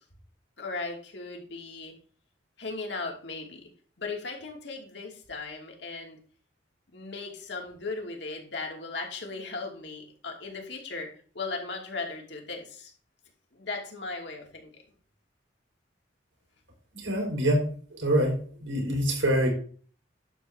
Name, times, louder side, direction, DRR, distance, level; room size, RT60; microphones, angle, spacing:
voice 1, 0.6-1.9 2.6-3.7 4.0-6.2 6.9-12.9 13.5-14.7, left 3 dB, 65° left, 1 dB, 2.7 m, -37 dB
voice 2, 16.9-17.6 17.9-19.5, equal, 85° right, 1 dB, 4.6 m, -25 dB
11.5 x 3.9 x 7.3 m, 0.44 s
head